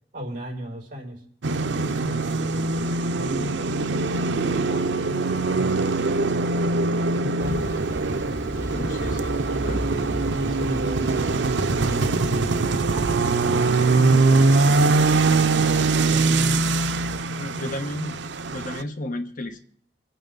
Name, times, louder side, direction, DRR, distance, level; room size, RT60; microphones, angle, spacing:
voice 1, 0.1-1.2 1.8-4.3 4.7-7.8 9.7-14.3, left 1 dB, 50° right, -2 dB, 5.8 m, -36 dB
sound 1, 1.4-18.8, right 3 dB, 85° right, 0.6 m, -22 dB
Thunder, 7.4-17.2, equal, 20° right, 4.3 m, -36 dB
voice 2, 8.7-9.9 17.4-18.2 18.5-19.6, left 1 dB, 50° left, 7 dB, 1.1 m, -33 dB
27.0 x 9.2 x 4.0 m, 0.64 s
head